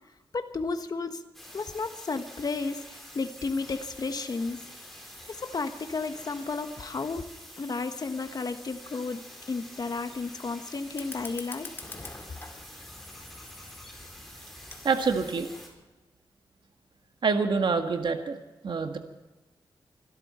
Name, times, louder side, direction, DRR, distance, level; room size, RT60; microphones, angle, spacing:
voice 1, 0.3-1.2 1.5-2.8 3.1-4.6 5.3-7.2 7.6-9.2 9.5-11.7, left 4 dB, 50° left, 8 dB, 1.3 m, -32 dB
sound 1, 1.3-15.7, equal, ahead, 4.6 m, -47 dB
Fire, 10.9-15.9, left 2 dB, 25° left, 2.4 m, -46 dB
voice 2, 14.8-15.5 17.2-18.4 18.6-19.0, right 4 dB, 65° right, 6 dB, 1.8 m, -26 dB
25.5 x 13.0 x 4.4 m, 1.1 s
wide cardioid pair, 105°, 9 cm